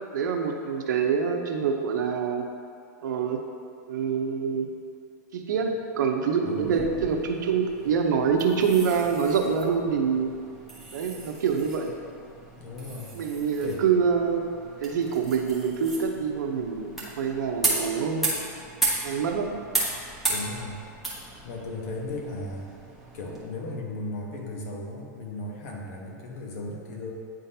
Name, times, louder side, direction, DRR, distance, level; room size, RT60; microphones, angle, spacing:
voice 1, 0.1-2.4 3.0-3.4 3.9-4.7 5.3-10.3 10.9-11.9 13.1-14.5 14.8-18.3 19.0-19.5, right 6 dB, 85° right, 3 dB, 0.8 m, -26 dB
voice 2, 6.4-6.9 12.6-13.1 13.6-13.8 20.3-20.8 21.4-22.7 23.1-27.1, left 2 dB, 55° left, -1 dB, 1.2 m, -36 dB
sound 1, 6.5-23.4, right 2 dB, ahead, 1.2 m, -35 dB
9.6 x 3.8 x 2.8 m, 2.4 s
supercardioid pair, 145°, 10 cm